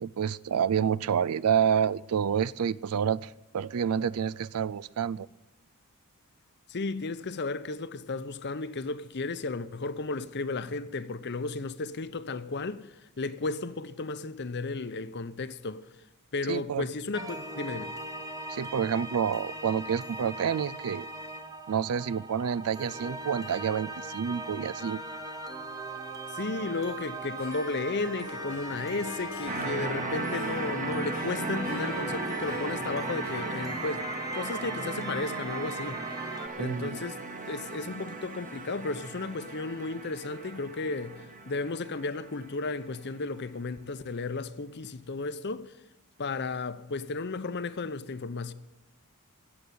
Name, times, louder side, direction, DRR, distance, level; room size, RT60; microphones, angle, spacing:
voice 1, 0.0-5.3 16.5-16.9 18.5-21.1 21.7-25.0 36.6-37.0, right 7 dB, 80° right, 0.4 m, -28 dB
voice 2, 6.7-15.8 16.3-17.9 26.3-34.1 34.3-45.7 46.2-48.5, left 3 dB, 50° left, 0.7 m, -34 dB
sound 1, 17.1-36.5, right 2 dB, 15° right, 1.1 m, -39 dB
Harp, 27.4-36.1, left 4 dB, 65° left, 1.6 m, -45 dB
sound 2, 29.5-43.0, right 3 dB, 35° right, 1.5 m, -37 dB
16.0 x 7.8 x 10.0 m
head